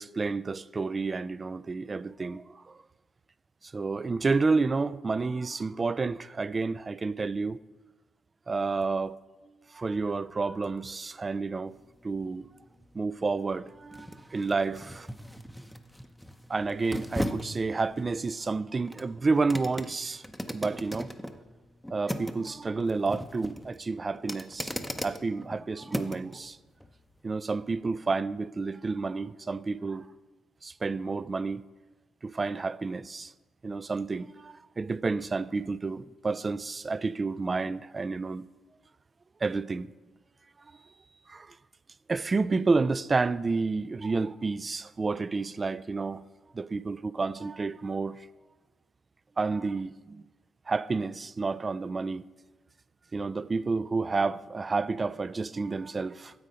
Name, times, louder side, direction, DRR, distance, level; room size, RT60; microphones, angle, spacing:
voice 1, 0.0-2.8 3.6-7.6 8.5-9.2 9.7-11.8 12.0-12.5 12.9-15.1 16.5-20.2 20.5-21.1 21.9-24.7 25.0-26.6 27.2-30.1 30.6-31.6 32.2-33.3 33.6-38.5 39.4-39.9 41.3-41.6 42.1-46.2 46.5-48.3 49.4-50.2 50.7-52.3 53.1-56.5, right 4 dB, 30° right, 0.3 m, -30 dB
sound 1, 11.7-26.4 26.8-26.9, equal, ahead, 0.7 m, -39 dB
9.8 x 7.2 x 5.2 m
cardioid pair, 75°, 0 cm